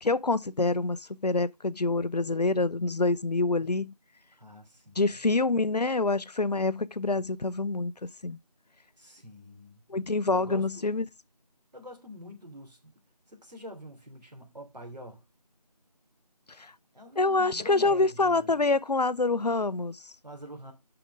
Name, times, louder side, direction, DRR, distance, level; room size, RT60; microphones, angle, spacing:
voice 1, 0.0-3.9 5.0-7.9 8.2-8.4 9.9-11.1 16.6-16.7 17.2-20.1, left 3 dB, 75° left, 0.5 m, -26 dB
voice 2, 4.4-5.2 9.0-9.8 10.3-10.9 11.7-12.9 13.3-15.2 16.9-18.5 20.2-20.7, equal, 80° right, 3.3 m, -45 dB
7.0 x 5.8 x 5.0 m
figure-of-eight pair, 180°, 21 cm